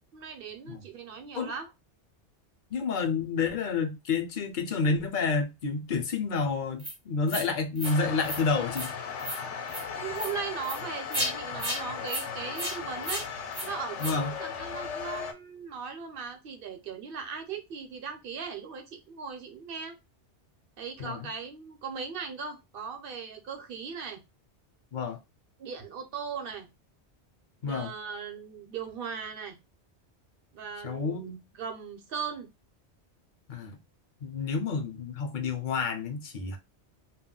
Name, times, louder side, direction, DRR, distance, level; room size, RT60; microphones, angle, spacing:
voice 1, 0.1-1.7 9.9-13.3 13.6-20.0 20.8-24.2 25.6-26.7 27.6-29.6 30.5-31.2 31.5-32.5, right 6 dB, 60° right, 0.8 m, -38 dB
voice 2, 2.7-8.9 14.0-14.3 21.0-21.3 24.9-25.2 27.6-27.9 30.8-31.4 33.5-33.8 34.2-36.6, left 4 dB, 55° left, 0.7 m, -29 dB
sound 1, 6.8-6.9 7.3-7.5 7.8-8.0 8.2-8.4 8.7-8.9 9.2-9.4 9.7-9.8 10.2-10.3 10.6-10.8 11.1-11.3 11.6-11.8 12.1-12.2 12.6-12.8 13.0-13.2 13.5-13.7 14.0-14.2, equal, 20° right, 0.5 m, -33 dB
sound 2, 7.8-15.3, left 6 dB, 90° left, 0.9 m, -37 dB
2.3 x 2.1 x 3.7 m
omnidirectional pair, 1.2 m